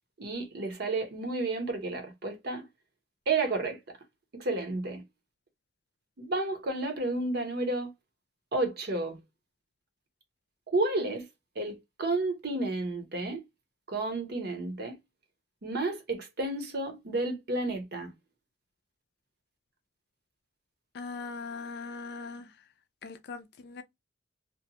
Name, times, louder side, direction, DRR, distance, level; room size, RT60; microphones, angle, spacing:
voice 1, 0.2-2.7 3.3-3.8 4.3-5.0 6.2-7.9 8.5-9.2 10.7-11.3 11.6-13.4 13.9-15.0 15.6-18.1, right 2 dB, 55° right, 0.8 m, -31 dB
voice 2, 20.9-22.5 23.0-23.8, left 4 dB, 60° left, 0.4 m, -40 dB
2.6 x 2.2 x 2.7 m
head